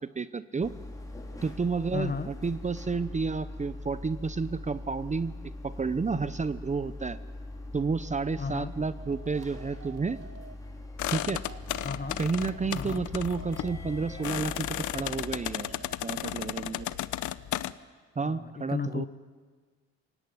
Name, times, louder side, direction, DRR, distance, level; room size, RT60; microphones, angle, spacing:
voice 1, 0.1-0.7 1.4-5.3 5.6-7.2 7.7-10.2 11.1-11.4 12.2-15.7 16.0-16.9 18.2-19.1, right 4 dB, 25° right, 14 dB, 0.8 m, -31 dB
sound 1, 0.6-15.5, left 2 dB, 10° left, 4.8 m, -42 dB
voice 2, 1.9-2.3 8.4-8.7 11.8-12.2 12.7-13.1 18.2-19.1, left 5 dB, 30° left, 12 dB, 1.3 m, -34 dB
sound 2, 9.0-10.6 11.2-12.7 13.4-14.9 15.5-17.1, right 5 dB, 50° right, 1.9 m, -49 dB
sound 3, 11.0-17.7, left 13 dB, 75° left, 0.9 m, -34 dB
26.5 x 17.0 x 9.6 m, 1.5 s
cardioid pair, 90°, 30 cm